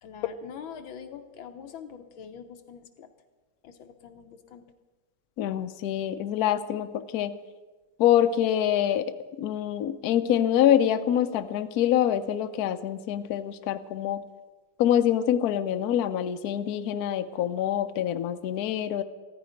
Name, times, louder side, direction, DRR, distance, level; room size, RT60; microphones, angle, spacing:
voice 1, 0.0-3.1 3.6-4.6, left 7 dB, 90° left, 6 dB, 1.8 m, -44 dB
voice 2, 5.4-7.4 8.0-14.2 14.8-19.0, left 10 dB, 65° left, 10 dB, 1.0 m, -25 dB
15.0 x 13.5 x 5.1 m, 1.3 s
omnidirectional pair, 2.1 m